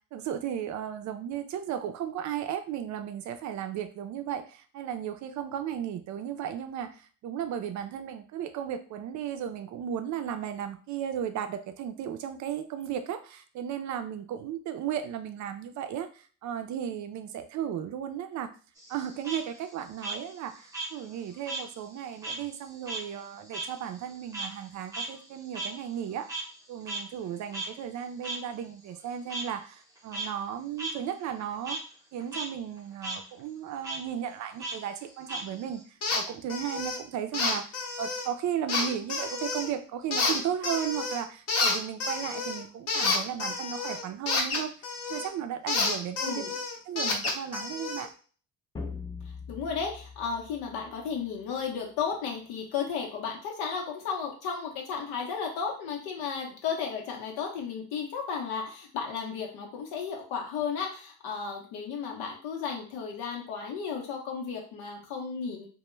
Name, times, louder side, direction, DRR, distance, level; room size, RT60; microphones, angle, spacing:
voice 1, 0.1-18.5 18.9-26.3 26.7-31.8 32.1-37.7 38.0-44.7 45.1-46.4 46.9-48.1, right 9 dB, 50° right, 8 dB, 0.4 m, -35 dB
Frog, 18.8-21.7 22.0-26.6 26.9-27.0 27.5-27.7 28.2-28.4 29.3-29.4 30.0-30.3 30.8-30.9 31.3-31.8 32.2-32.5 32.8-33.2 33.8-34.0 34.6-35.8, right 2 dB, 10° right, 0.7 m, -37 dB
sound 1, 36.0-36.2 36.5-37.0 37.3-38.3 38.7-39.7 40.1-41.2 41.5-45.3 45.7-48.1, left 3 dB, 45° left, 0.7 m, -29 dB
voice 2, 46.2-46.5 49.5-65.7, left 6 dB, 90° left, 0 dB, 0.7 m, -34 dB
sound 2, 48.8-51.4, left 4 dB, 10° left, 0.3 m, -42 dB
2.2 x 2.1 x 3.0 m, 0.39 s
cardioid pair, 110°, 37 cm